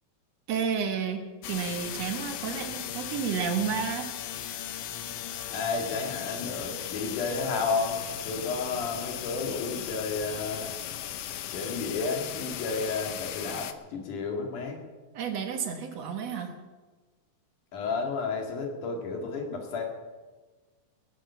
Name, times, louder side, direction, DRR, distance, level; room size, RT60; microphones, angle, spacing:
voice 1, 0.5-4.1 15.1-16.5, right 7 dB, 60° right, 5 dB, 2.4 m, -31 dB
sound 1, 1.4-13.7, left 11 dB, 70° left, 1.6 m, -37 dB
voice 2, 5.5-10.7 11.5-14.8 17.7-19.8, left 4 dB, 90° left, 2 dB, 3.8 m, -32 dB
19.5 x 9.0 x 6.9 m, 1.3 s
omnidirectional pair, 3.5 m